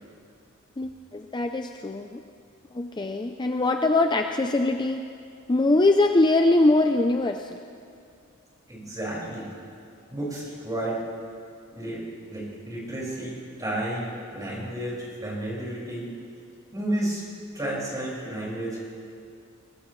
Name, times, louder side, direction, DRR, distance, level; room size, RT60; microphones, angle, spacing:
voice 1, 0.8-2.2 2.7-5.0 5.5-7.6, left 2 dB, 20° left, 5 dB, 0.5 m, -22 dB
voice 2, 8.7-9.5 10.1-11.0 11.7-12.0 12.3-16.1 16.7-17.2 17.5-18.8, right 1 dB, 20° right, -5 dB, 5.2 m, -31 dB
23.5 x 18.5 x 3.2 m, 2.5 s
head